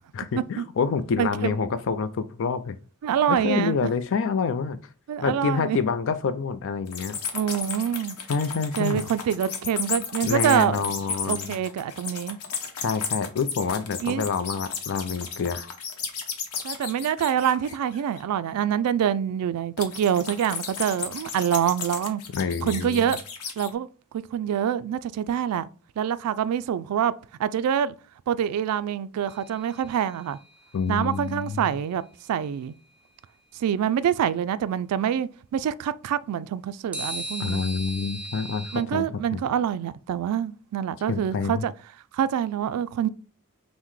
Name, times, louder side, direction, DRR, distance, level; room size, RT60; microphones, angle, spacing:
voice 1, 0.1-2.8 3.3-4.8 5.2-7.2 8.3-9.1 10.2-11.6 12.8-15.7 22.3-23.1 30.7-31.8 37.4-39.0 39.3-39.4 41.1-41.6, left 5 dB, 60° left, 0.4 m, -27 dB
voice 2, 1.2-1.5 3.0-3.9 5.1-5.8 7.3-8.2 8.8-10.8 11.3-12.4 14.0-14.3 16.6-22.2 22.6-23.2 23.6-23.9 24.1-25.7 26.0-27.1 27.4-27.9 28.3-30.4 30.9-32.0 32.3-32.7 33.6-37.6 38.7-41.7 42.1-43.1, right 9 dB, 85° right, 0.3 m, -26 dB
sound 1, 6.9-18.2 19.8-23.7, left 6 dB, 80° left, 0.8 m, -34 dB
sound 2, 29.3-30.5 36.9-38.8, right 1 dB, 5° right, 0.5 m, -37 dB
5.6 x 2.1 x 3.1 m
head